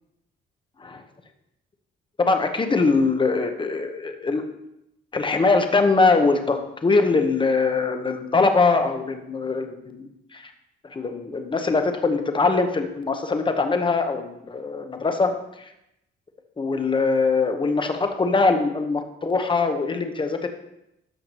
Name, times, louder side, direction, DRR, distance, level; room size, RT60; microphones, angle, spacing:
voice 1, 2.2-4.4 5.1-10.5 10.9-15.7 16.6-20.5, left 4 dB, 25° left, 6 dB, 1.0 m, -22 dB
13.5 x 5.8 x 3.0 m, 0.84 s
cardioid pair, 90°, 20 cm